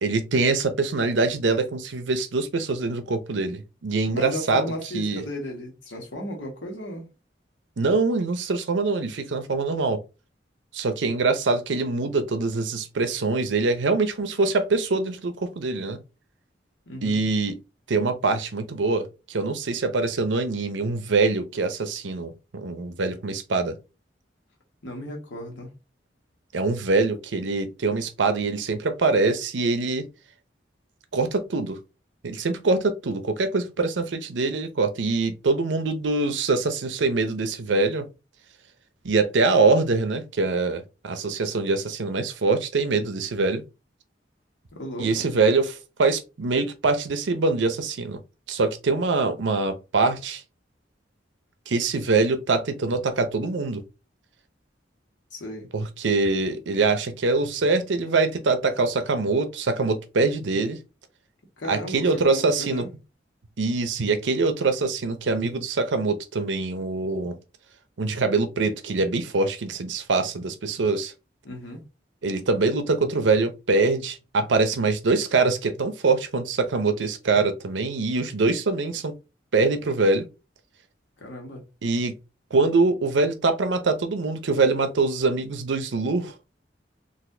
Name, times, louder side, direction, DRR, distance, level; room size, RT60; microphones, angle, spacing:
voice 1, 0.0-4.7 4.9-5.2 7.8-10.0 10.7-16.0 17.0-17.6 17.9-23.7 26.5-30.1 31.1-31.8 32.2-38.1 39.0-43.6 45.0-48.2 48.5-50.4 51.7-53.8 55.7-60.8 61.7-62.9 63.6-67.4 68.0-71.1 72.2-79.1 79.5-80.3 81.8-82.2 82.5-86.4, right 3 dB, 85° right, 0.6 m, -24 dB
voice 2, 4.1-7.0 16.8-17.2 24.8-25.7 44.7-45.3 55.3-55.7 61.6-62.9 71.4-71.8 81.2-81.6, left 1 dB, 90° left, 1.3 m, -35 dB
4.1 x 2.5 x 2.6 m
head